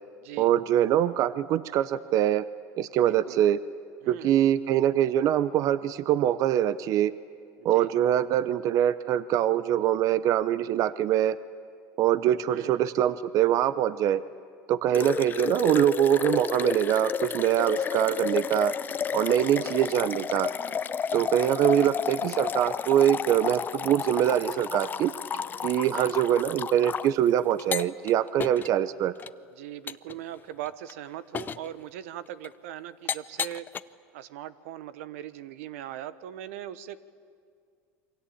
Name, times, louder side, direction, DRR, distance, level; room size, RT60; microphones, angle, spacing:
voice 1, 0.4-2.4 2.8-3.6 4.1-7.1 7.6-11.4 12.0-14.2 14.7-18.7 19.1-20.5 21.1-25.1 25.6-29.1, right 11 dB, 50° right, 15 dB, 0.7 m, -24 dB
voice 2, 3.0-3.4 4.0-4.3 7.6-7.9 12.5-12.8 14.9-15.1 19.3-19.8 21.6-21.9 25.9-26.2 29.6-33.7 34.1-37.0, right 12 dB, 85° right, 15 dB, 1.1 m, -40 dB
sound 1, 14.9-27.1 27.6-28.1 28.4-28.7 29.2-29.3 29.9-30.1 30.7-30.9 31.3-31.7 32.4-32.5 33.1-33.8, left 7 dB, 25° left, 0.6 m, -32 dB
28.5 x 24.0 x 8.7 m, 2.2 s
supercardioid pair, 125°, 7 cm